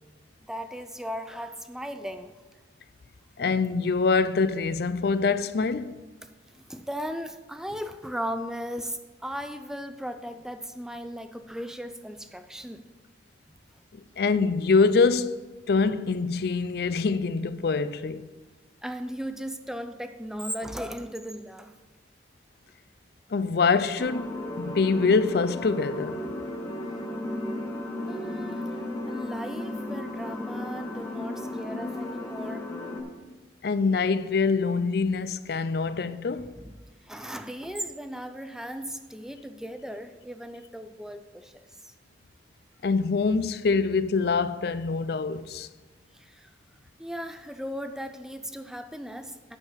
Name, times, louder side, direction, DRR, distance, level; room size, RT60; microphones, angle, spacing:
voice 1, 0.5-2.3 6.5-12.8 18.8-21.8 28.1-28.8 29.1-32.7 36.5-36.7 37.0-41.9 46.1-46.5 47.0-49.6, equal, 5° right, 0.4 m, -37 dB
voice 2, 3.4-6.0 13.9-15.4 15.7-18.3 23.3-26.3 33.6-36.6 42.8-45.7, left 4 dB, 55° left, 0.4 m, -25 dB
sound 1, 24.0-33.0, left 1 dB, 15° left, 1.6 m, -34 dB
9.8 x 6.4 x 5.6 m
head